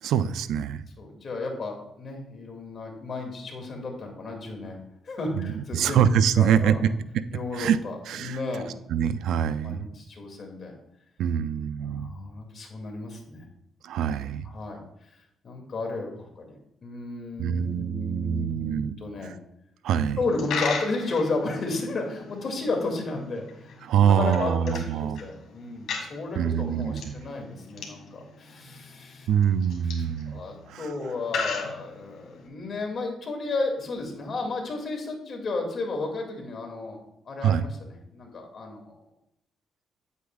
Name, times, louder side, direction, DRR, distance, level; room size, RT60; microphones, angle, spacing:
voice 1, 0.0-0.8 5.4-6.8 7.5-7.8 8.1-8.4 8.9-9.9 11.2-12.1 13.8-14.5 17.4-18.9 19.2-19.4 19.8-20.2 23.8-25.2 26.4-27.1 29.3-30.4 30.7-30.9 37.4-37.6, right 8 dB, 80° right, 13 dB, 0.4 m, -24 dB
voice 2, 1.0-4.8 5.0-6.8 7.3-8.7 9.6-10.7 11.8-13.4 14.4-14.8 15.4-19.3 20.2-29.3 30.3-39.0, left 3 dB, 50° left, 2 dB, 2.2 m, -33 dB
Coin (dropping), 20.2-32.5, left 5 dB, 75° left, 1.8 m, -38 dB
9.3 x 8.2 x 2.4 m, 0.79 s
cardioid pair, 90°, 0 cm